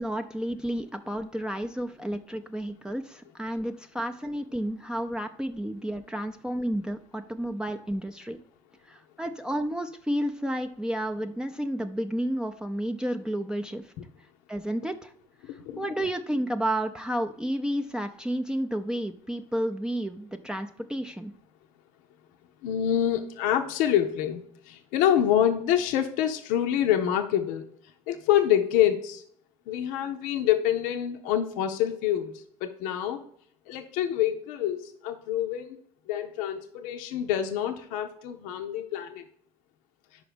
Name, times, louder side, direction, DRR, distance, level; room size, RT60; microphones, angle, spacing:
voice 1, 0.0-8.4 8.9-13.9 14.5-15.1 15.8-21.3, right 1 dB, 5° right, 4 dB, 0.5 m, -31 dB
voice 2, 15.4-15.8 22.6-27.7 28.1-29.2 29.7-33.2 33.7-35.8 36.1-39.2, left 10 dB, 80° left, 5 dB, 0.6 m, -26 dB
5.2 x 4.9 x 5.0 m, 0.66 s
supercardioid pair, 70°, 14 cm